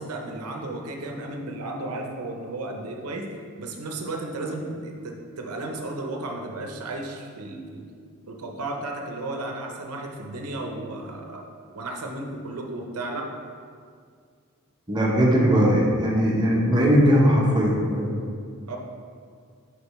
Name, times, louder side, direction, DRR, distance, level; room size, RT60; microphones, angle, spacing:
voice 1, 0.0-3.3 3.6-7.9 8.3-11.4 11.7-13.3 18.7-18.8, right 2 dB, 85° right, 2 dB, 0.7 m, -34 dB
voice 2, 14.9-18.1, equal, 20° right, -3 dB, 0.9 m, -19 dB
6.7 x 4.7 x 3.1 m, 2.1 s
head